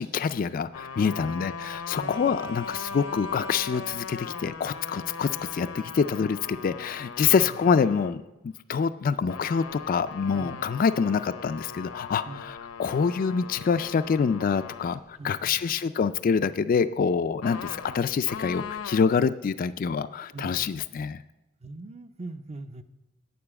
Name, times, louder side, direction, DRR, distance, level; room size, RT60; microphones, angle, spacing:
voice 1, 0.0-21.2, left 6 dB, 45° left, 13 dB, 0.3 m, -26 dB
sound 1, 0.7-8.1 9.2-15.0 17.4-19.0, left 5 dB, 85° left, 0.8 m, -39 dB
voice 2, 2.0-2.4 7.2-7.5 10.4-10.6 12.3-12.5 15.2-15.8 18.3-18.4 20.3-20.9 21.6-22.8, right 2 dB, 30° right, 11 dB, 0.5 m, -42 dB
8.7 x 6.9 x 8.6 m, 0.97 s
head